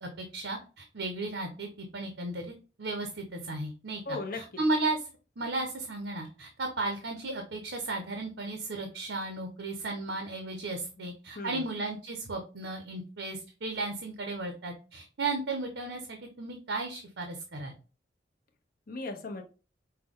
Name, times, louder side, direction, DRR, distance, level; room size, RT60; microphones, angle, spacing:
voice 1, 0.0-2.5 2.8-5.0 5.4-17.7, right 2 dB, 90° right, 3 dB, 0.8 m, -35 dB
voice 2, 4.1-4.6 11.0-11.1 11.4-11.6 18.9-19.4, left 3 dB, 55° left, 4 dB, 0.8 m, -37 dB
5.7 x 2.2 x 3.6 m, 0.34 s
head